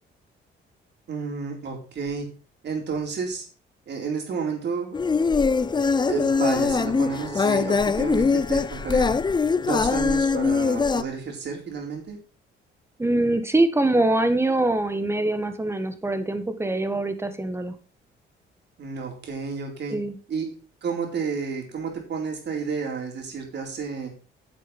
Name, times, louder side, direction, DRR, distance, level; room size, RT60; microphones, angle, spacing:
voice 1, 1.1-2.3 2.6-3.4 3.9-4.9 6.1-9.2 9.6-12.2 18.8-20.0 20.3-20.5 20.8-24.1, right 5 dB, 60° right, 2 dB, 4.1 m, -31 dB
sound 1, 4.9-11.0, left 4 dB, 20° left, 0.5 m, -22 dB
voice 2, 13.0-17.7 19.9-20.1, right 2 dB, 15° right, 9 dB, 1.7 m, -23 dB
10.5 x 7.3 x 4.5 m, 0.36 s
cardioid pair, 90°, 20 cm